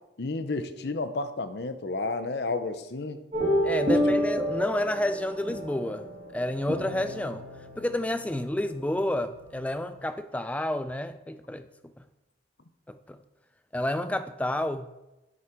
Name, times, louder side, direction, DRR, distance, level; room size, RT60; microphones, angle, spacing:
voice 1, 0.2-3.2 3.8-4.2, left 3 dB, 65° left, 0.7 m, -32 dB
sound 1, 3.3-9.9, equal, 35° right, 1.9 m, -30 dB
voice 2, 3.6-7.4 7.8-11.7 12.9-13.2 13.7-14.9, left 1 dB, 10° left, 0.3 m, -30 dB
9.7 x 6.3 x 4.5 m
head